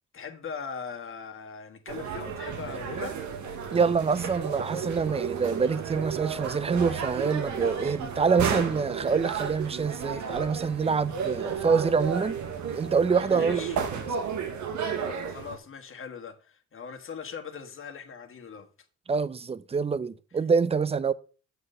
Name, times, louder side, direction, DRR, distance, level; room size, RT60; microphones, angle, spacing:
voice 1, 0.1-3.3 13.3-13.8 15.3-18.7, left 6 dB, 45° left, 1.5 m, -40 dB
sound 1, 1.9-15.6, right 6 dB, 70° right, 1.1 m, -33 dB
voice 2, 3.7-12.4 12.7-13.6 13.9-14.1 19.1-21.1, right 5 dB, 20° right, 0.5 m, -26 dB
7.7 x 4.1 x 6.6 m
cardioid pair, 90°, 30 cm